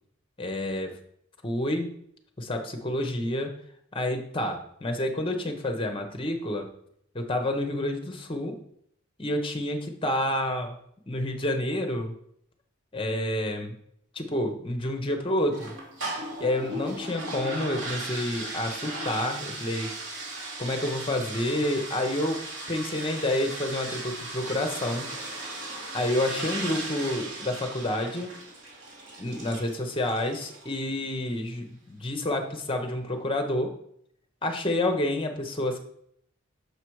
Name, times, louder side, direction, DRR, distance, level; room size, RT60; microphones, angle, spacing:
voice 1, 0.4-1.0 1.4-1.9 2.4-3.6 3.9-6.7 7.1-8.6 9.2-10.8 11.1-12.1 12.9-13.7 14.1-15.7 16.4-19.9 20.6-22.4 22.7-25.1 25.9-28.4 29.2-33.7 34.4-35.8, left 1 dB, 25° left, 5 dB, 0.8 m, -29 dB
sound 1, 15.5-30.8, right 2 dB, 60° right, 2.2 m, -37 dB
6.9 x 5.0 x 4.6 m, 0.69 s
head